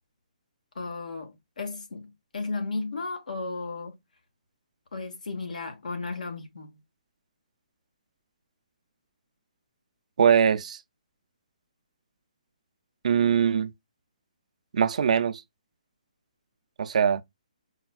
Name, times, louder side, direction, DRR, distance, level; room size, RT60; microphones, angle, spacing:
voice 1, 0.7-4.0 4.9-6.8, left 3 dB, 75° left, 1.0 m, -34 dB
voice 2, 10.2-10.8 13.0-13.7 14.7-15.4 16.8-17.2, right 7 dB, 60° right, 0.4 m, -22 dB
4.2 x 2.2 x 2.2 m
hypercardioid pair, 150°, 4 cm